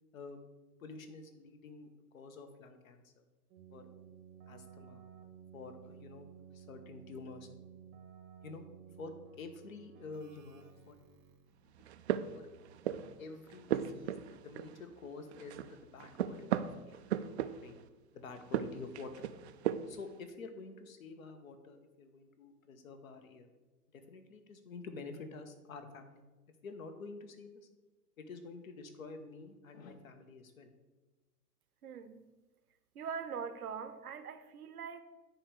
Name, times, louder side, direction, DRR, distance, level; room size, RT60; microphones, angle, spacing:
voice 1, 0.8-1.9 2.1-3.2 3.7-3.9 4.5-5.0 5.5-7.5 8.4-8.6 9.0-9.1 9.4-11.0 11.6-11.7 12.3-12.5 13.2-17.0 17.6-17.7 18.1-19.3 19.9-23.5 23.9-26.2 26.6-27.7 28.2-30.7, left 4 dB, 60° left, 7 dB, 1.2 m, -49 dB
Keyboard (musical), 3.5-11.6, right 8 dB, 25° right, 0.9 m, -55 dB
sound 1, 11.7-13.2 13.5-15.0 15.3-17.9 18.4-20.1, right 10 dB, 45° right, 0.4 m, -37 dB
voice 2, 31.8-32.3 32.9-35.0, right 6 dB, 65° right, 10 dB, 0.9 m, -42 dB
9.8 x 3.5 x 6.5 m, 1.2 s
figure-of-eight pair, 105°, 48 cm